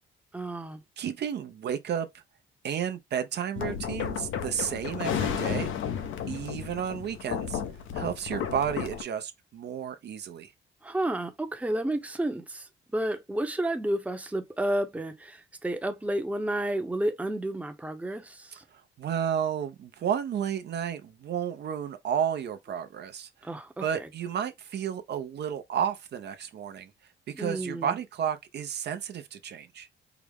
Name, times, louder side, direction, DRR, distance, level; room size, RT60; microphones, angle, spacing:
voice 1, 0.3-0.8 10.8-18.6 23.4-24.1 27.3-28.0, right 1 dB, 5° right, 0.7 m, -31 dB
voice 2, 1.0-2.1 2.6-5.7 6.3-7.6 7.9-10.5 18.7-23.5 23.8-26.9 27.3-29.9, right 8 dB, 60° right, 0.6 m, -32 dB
sound 1, 3.6-9.0, left 8 dB, 80° left, 0.8 m, -33 dB
4.8 x 2.0 x 3.4 m
cardioid pair, 90°, 20 cm